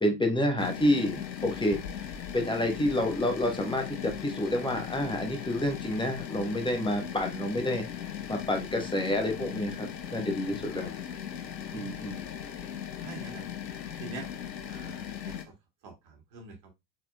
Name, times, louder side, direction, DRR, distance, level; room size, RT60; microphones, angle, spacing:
voice 1, 0.0-1.8 2.3-7.8 8.3-10.9 11.7-12.2, left 1 dB, 10° left, 3 dB, 1.4 m, -29 dB
sound 1, 0.6-15.5, left 9 dB, 85° left, 0.6 m, -38 dB
voice 2, 11.7-12.1 12.4-12.5 13.0-13.5 13.9-14.3 14.7-15.5 15.8-16.7, right 4 dB, 45° right, 1 dB, 2.3 m, -45 dB
4.8 x 4.3 x 2.3 m, 0.21 s
figure-of-eight pair, 65°, 49 cm